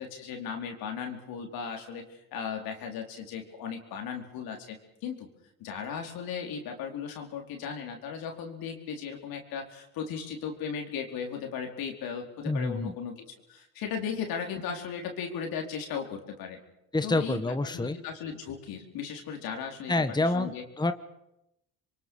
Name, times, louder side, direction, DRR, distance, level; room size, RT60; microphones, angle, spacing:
voice 1, 0.0-5.3 5.6-16.6 17.0-20.6, left 7 dB, 75° left, 3 dB, 4.5 m, -37 dB
voice 2, 12.5-12.9 16.9-18.0 19.9-20.9, left 2 dB, 10° left, 10 dB, 1.4 m, -27 dB
27.0 x 23.5 x 6.5 m, 0.87 s
supercardioid pair, 70°, 36 cm